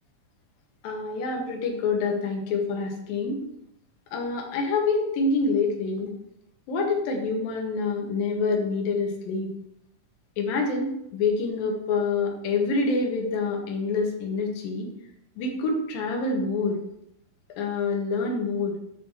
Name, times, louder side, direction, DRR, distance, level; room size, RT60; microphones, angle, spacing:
voice 1, 0.8-3.4 4.1-6.1 6.7-9.5 10.4-14.9 15.4-16.8 17.6-18.8, left 3 dB, 70° left, 1 dB, 2.8 m, -26 dB
8.1 x 2.9 x 5.9 m, 0.81 s
omnidirectional pair, 4.5 m